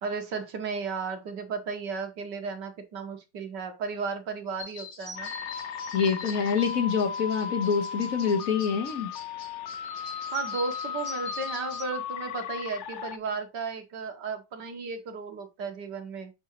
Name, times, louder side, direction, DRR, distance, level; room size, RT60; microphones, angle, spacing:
voice 1, 0.0-5.3 10.3-16.3, right 4 dB, 75° right, 2.0 m, -34 dB
sound 1, 4.6-11.8, left 3 dB, 90° left, 2.5 m, -44 dB
sound 2, 5.2-13.2, left 7 dB, 75° left, 0.6 m, -36 dB
voice 2, 5.9-9.1, left 6 dB, 50° left, 1.7 m, -26 dB
8.0 x 4.8 x 3.0 m
omnidirectional pair, 1.9 m